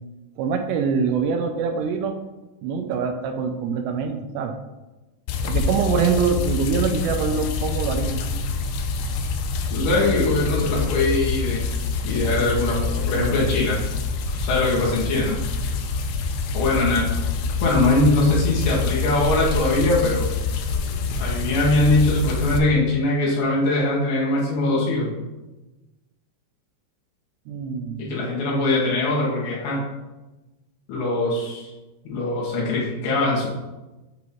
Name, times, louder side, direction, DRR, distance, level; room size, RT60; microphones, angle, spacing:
voice 1, 0.4-2.2 2.6-4.6 5.4-8.2 16.8-16.9 27.5-28.1, right 5 dB, 80° right, 5 dB, 2.6 m, -24 dB
sound 1, 5.3-22.6, left 4 dB, 85° left, 2.7 m, -26 dB
voice 2, 9.7-11.6 12.0-13.8 14.3-15.4 16.5-17.1 17.6-20.3 21.2-25.1 28.0-29.8 30.9-31.7 32.0-33.5, left 2 dB, 65° left, -5 dB, 3.4 m, -21 dB
8.8 x 3.0 x 5.4 m, 1.1 s
omnidirectional pair, 5.1 m